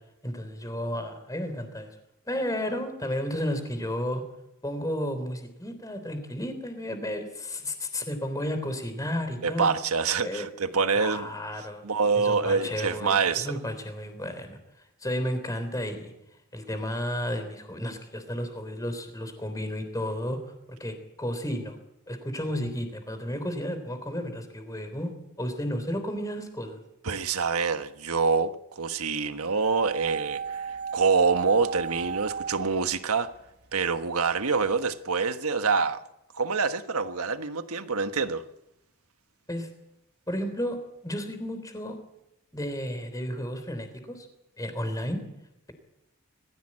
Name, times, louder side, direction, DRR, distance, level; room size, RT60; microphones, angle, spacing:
voice 1, 0.2-1.9 2.3-4.2 4.6-9.7 10.2-10.5 10.9-11.8 12.1-14.6 15.0-16.1 16.5-20.5 20.8-21.8 22.1-25.1 25.4-26.8 39.5-39.7 40.3-40.8 41.0-42.0 42.5-44.3 44.6-45.2, equal, 15° left, 3.5 m, -32 dB
voice 2, 9.4-11.3 11.8-13.5 27.0-33.3 33.7-36.0 36.3-38.4, right 5 dB, 85° right, 1.4 m, -26 dB
sound 1, 29.6-33.7 34.0-34.1, right 6 dB, 50° right, 1.5 m, -35 dB
22.0 x 15.5 x 8.8 m
head